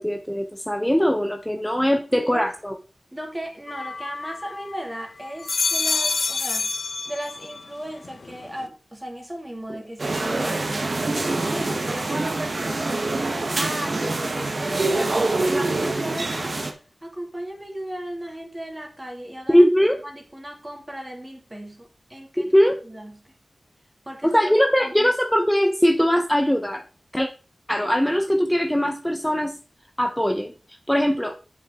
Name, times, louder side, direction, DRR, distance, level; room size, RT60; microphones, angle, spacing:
voice 1, 0.0-2.7 19.5-20.0 22.4-22.8 24.2-26.8 27.1-27.3 27.7-29.5 30.0-30.5 30.9-31.4, equal, 5° left, 0.8 m, -20 dB
voice 2, 2.1-2.5 3.1-6.7 7.1-11.0 11.4-19.6 20.0-22.5 22.8-23.3 24.0-25.1, right 1 dB, 15° right, 2.4 m, -36 dB
sound 1, 3.7-4.8 5.3-7.7 8.0-8.6, left 4 dB, 65° left, 0.4 m, -27 dB
sound 2, 10.0-16.7, right 2 dB, 50° right, 1.1 m, -25 dB
7.8 x 6.1 x 3.7 m
wide cardioid pair, 70°, 0 cm